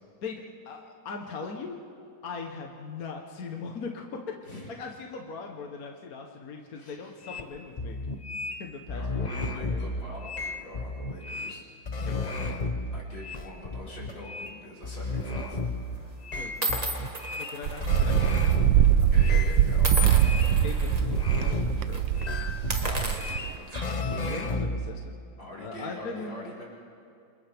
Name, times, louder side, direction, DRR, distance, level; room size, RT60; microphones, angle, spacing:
voice 1, 0.2-1.8 2.2-4.2 4.7-8.0 8.6-9.4 9.7-9.8 12.0-12.1 16.3-17.1 17.4-19.1 20.6-21.1 21.3-22.3 24.3-25.2 25.6-26.5, left 4 dB, 55° left, 2 dB, 1.5 m, -40 dB
voice 2, 6.7-7.1 8.9-11.6 12.0-12.5 12.9-15.6 19.1-20.6 22.8-24.0 25.4-26.6, left 1 dB, 75° left, -7 dB, 5.9 m, -43 dB
sound 1, 7.2-7.4 7.8-8.6 8.9-11.6 11.9-14.5 14.8-16.0 16.3-18.9 19.2-21.9 22.2-24.9, left 3 dB, 35° left, 0.6 m, -33 dB
sound 2, 14.9-15.2 16.0-16.1 16.6-18.6 18.8-19.0 19.8-21.0 21.4-21.6 21.9-22.1 22.6-24.1, right 1 dB, 20° right, 1.5 m, -34 dB
Wind, 17.6-23.6, right 10 dB, 80° right, 1.4 m, -23 dB
28.0 x 27.5 x 3.5 m, 2.4 s
omnidirectional pair, 2.0 m